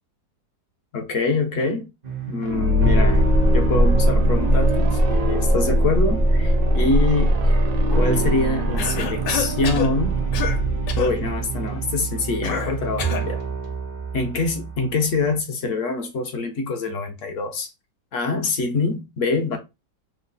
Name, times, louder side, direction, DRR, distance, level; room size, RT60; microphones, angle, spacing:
voice 1, 0.9-1.9 2.3-3.2 3.5-10.2 11.0-13.4 14.1-17.7 18.1-19.6, left 3 dB, 60° left, 0.8 m, -25 dB
sound 1, 2.0-15.4, right 1 dB, 85° right, 0.3 m, -22 dB
sound 2, 2.4-12.2, equal, 70° right, 1.1 m, -26 dB
Cough, 8.8-9.9 10.3-10.6 10.9-11.1 12.4-13.3, left 8 dB, 75° left, 1.2 m, -28 dB
3.2 x 2.0 x 3.7 m
omnidirectional pair, 1.9 m